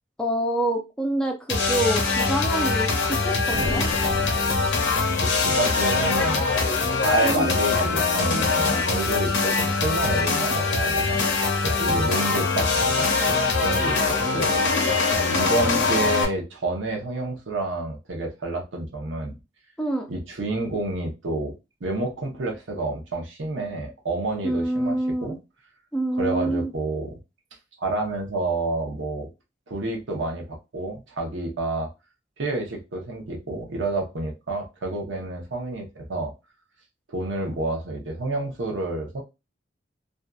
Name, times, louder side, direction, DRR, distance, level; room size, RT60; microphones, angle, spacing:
voice 1, 0.2-3.9 7.2-7.5 19.8-20.1 24.4-25.4 25.9-26.7, right 1 dB, 5° left, 2 dB, 0.4 m, -26 dB
sound 1, 1.5-16.3, left 4 dB, 75° left, 0.7 m, -23 dB
sound 2, 3.5-5.6, right 1 dB, 50° right, 0.5 m, -34 dB
voice 2, 5.1-6.4 6.9-11.2 11.6-19.3 20.1-21.5 21.8-25.4 26.2-27.2 27.8-29.3 29.7-31.9 32.4-36.3 37.1-39.2, right 2 dB, 85° right, 2 dB, 0.8 m, -29 dB
2.6 x 2.4 x 2.3 m, 0.25 s
head